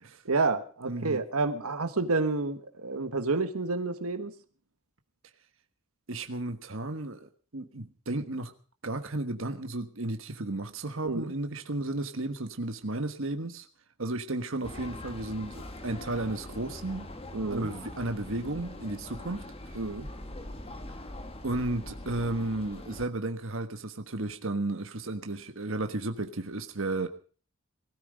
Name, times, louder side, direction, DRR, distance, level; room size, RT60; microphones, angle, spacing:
voice 1, 0.2-4.3 11.0-11.3 17.3-17.7 19.7-20.1, right 3 dB, 80° right, 8 dB, 1.4 m, -29 dB
voice 2, 0.8-1.2 6.1-8.5 8.8-13.7 14.0-17.1 17.5-19.5 21.4-27.1, right 2 dB, 60° right, 7 dB, 1.4 m, -33 dB
sound 1, 14.6-23.1, left 1 dB, 25° left, 1.3 m, -42 dB
20.0 x 13.5 x 5.1 m, 0.41 s
head